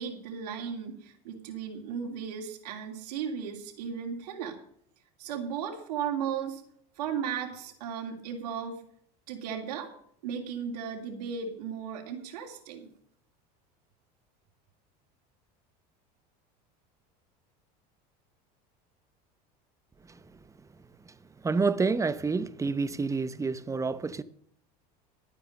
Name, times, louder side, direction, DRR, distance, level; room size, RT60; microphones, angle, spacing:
voice 1, 0.0-4.6 5.2-6.6 7.0-8.8 9.3-9.9 10.2-12.9, right 7 dB, 90° right, 3.0 m, -35 dB
voice 2, 21.4-24.2, right 4 dB, 15° right, 0.9 m, -28 dB
12.5 x 9.5 x 6.6 m
supercardioid pair, 115°, 20 cm